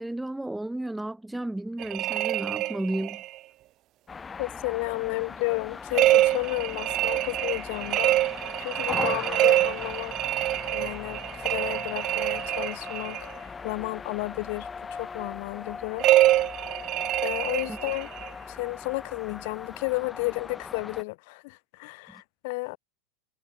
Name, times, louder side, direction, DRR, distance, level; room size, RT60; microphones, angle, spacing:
voice 1, 0.0-3.2 17.7-17.8 22.1-22.2, right 1 dB, 5° right, 3.2 m, -33 dB
sound 1, 1.8-3.4 5.9-13.3 16.0-18.3, right 15 dB, 45° right, 2.0 m, -25 dB
sound 2, 4.1-21.0, left 5 dB, 20° left, 1.6 m, -39 dB
voice 2, 4.4-10.1 10.7-13.2 13.6-16.1 17.2-18.1 18.5-22.8, left 28 dB, 65° left, 3.7 m, -32 dB
hypercardioid pair, 110°, 0 cm